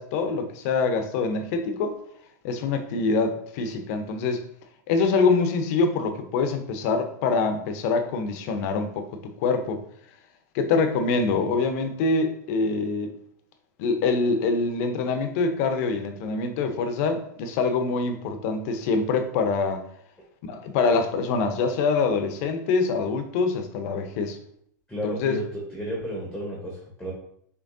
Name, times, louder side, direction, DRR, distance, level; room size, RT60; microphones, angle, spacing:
voice 1, 0.0-2.0 2.4-4.4 4.9-9.8 10.5-13.1 13.8-19.9 20.4-24.4 25.0-25.4, left 4 dB, 55° left, 7 dB, 0.8 m, -25 dB
voice 2, 24.9-27.1, equal, 5° left, -3 dB, 1.1 m, -32 dB
5.9 x 3.1 x 2.7 m, 0.67 s
hypercardioid pair, 130°, 10 cm